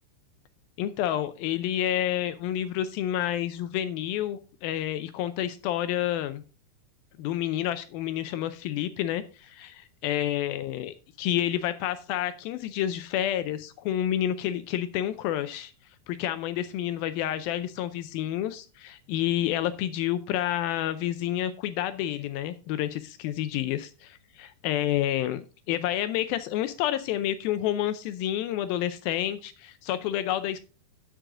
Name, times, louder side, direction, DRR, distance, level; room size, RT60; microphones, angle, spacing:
voice 1, 0.8-6.4 7.2-15.7 16.1-30.6, left 12 dB, 85° left, 2.1 m, -29 dB
9.4 x 9.1 x 3.7 m
omnidirectional pair, 4.8 m